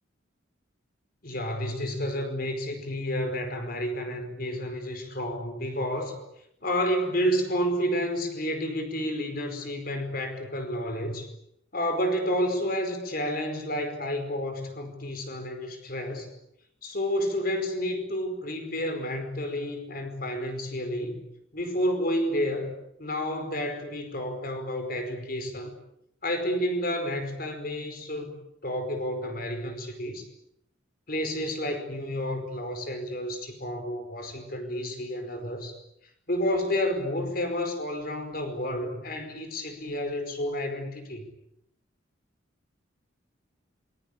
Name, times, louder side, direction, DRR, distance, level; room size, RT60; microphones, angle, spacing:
voice 1, 1.2-6.2 6.6-11.3 11.7-16.3 16.8-21.2 21.5-25.7 26.2-28.3 28.6-30.3 31.1-35.7 36.3-41.2, equal, 45° left, 6 dB, 5.0 m, -30 dB
27.5 x 21.5 x 8.7 m, 0.76 s
head